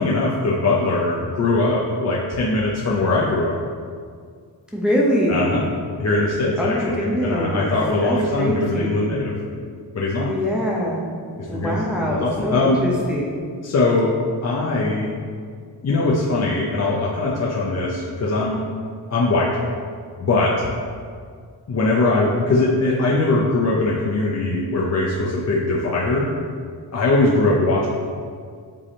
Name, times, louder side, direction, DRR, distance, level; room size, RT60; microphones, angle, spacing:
voice 1, 0.0-3.6 5.3-5.7 6.0-9.3 9.9-10.3 11.4-11.8 12.1-12.8 13.6-14.1 14.4-15.1 15.8-18.6 19.1-19.5 20.2-20.7 21.7-26.3 26.9-27.9, left 2 dB, 40° left, -4 dB, 0.6 m, -21 dB
voice 2, 4.7-5.6 6.6-7.7 8.0-9.1 10.3-11.1 11.5-13.4, equal, ahead, -4 dB, 0.7 m, -23 dB
7.6 x 3.4 x 4.2 m, 2.1 s
wide cardioid pair, 165°, 40 cm